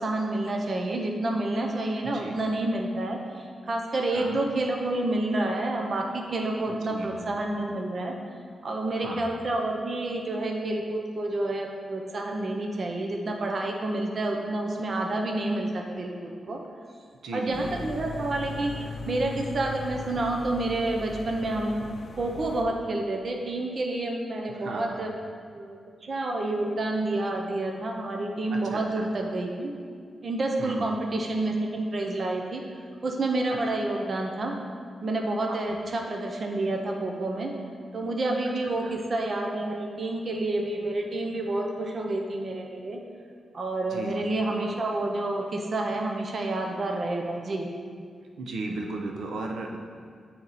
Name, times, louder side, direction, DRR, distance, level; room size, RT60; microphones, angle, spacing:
voice 1, 0.0-8.1 8.6-16.6 17.3-18.7 19.1-21.7 22.1-25.1 25.5-29.7 30.2-32.6 33.0-34.6 35.0-37.5 37.9-43.0 43.5-47.7, right 2 dB, 40° right, 1 dB, 0.6 m, -29 dB
voice 2, 6.7-7.4 8.9-9.3 17.2-17.8 24.5-25.1 28.5-29.1 30.6-30.9 35.5-35.6 38.8-38.9 43.9-44.2 48.4-49.8, right 2 dB, 85° right, 2 dB, 0.6 m, -36 dB
sound 1, 17.5-22.6, left 4 dB, 50° left, 0.4 m, -39 dB
7.8 x 4.3 x 4.0 m, 2.1 s
wide cardioid pair, 145°, 0 cm